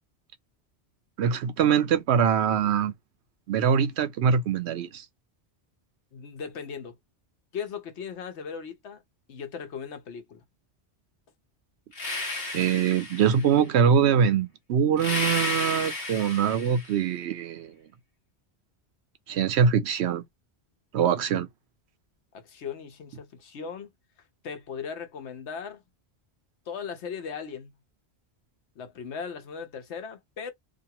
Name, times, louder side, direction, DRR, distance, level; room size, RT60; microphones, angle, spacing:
voice 1, 1.2-2.9 3.5-5.0 12.5-17.8 19.3-20.2 20.9-21.5, right 7 dB, 75° right, 0.9 m, -23 dB
voice 2, 6.1-7.0 7.5-9.0 9.3-10.4 22.3-23.9 24.4-25.8 26.7-27.7 28.8-30.5, left 6 dB, 85° left, 1.1 m, -38 dB
sound 1, 11.9-13.6 15.0-17.0, left 2 dB, 60° left, 1.2 m, -32 dB
2.6 x 2.6 x 2.8 m
omnidirectional pair, 1.1 m